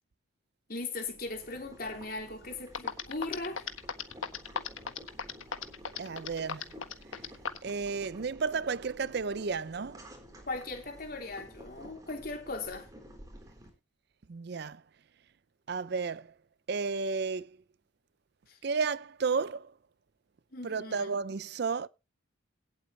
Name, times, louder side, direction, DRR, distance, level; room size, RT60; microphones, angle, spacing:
voice 1, 0.7-3.7 10.4-12.9 18.5-18.6 20.5-21.1, left 3 dB, 45° left, 3.3 m, -38 dB
Boiling, 0.9-13.7, equal, 20° right, 4.0 m, -51 dB
sound 1, 2.4-2.5 2.7-7.7, left 6 dB, 85° left, 1.6 m, -35 dB
voice 2, 6.0-6.7 7.6-10.0 14.3-14.8 15.7-16.3 16.7-17.5 18.6-19.7 20.6-21.9, right 5 dB, 55° right, 0.5 m, -32 dB
17.5 x 8.2 x 3.2 m
head